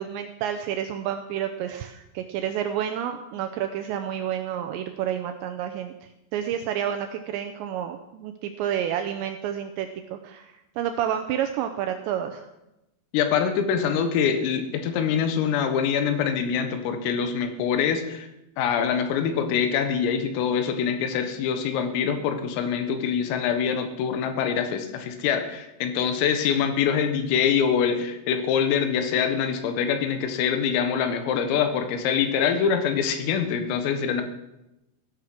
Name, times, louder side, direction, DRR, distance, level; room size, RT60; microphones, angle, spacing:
voice 1, 0.0-5.9 6.3-12.5, right 10 dB, 90° right, 7 dB, 2.6 m, -30 dB
voice 2, 13.1-18.3 18.6-34.2, left 7 dB, 85° left, 7 dB, 4.0 m, -24 dB
15.5 x 11.0 x 6.1 m, 0.93 s
omnidirectional pair, 5.9 m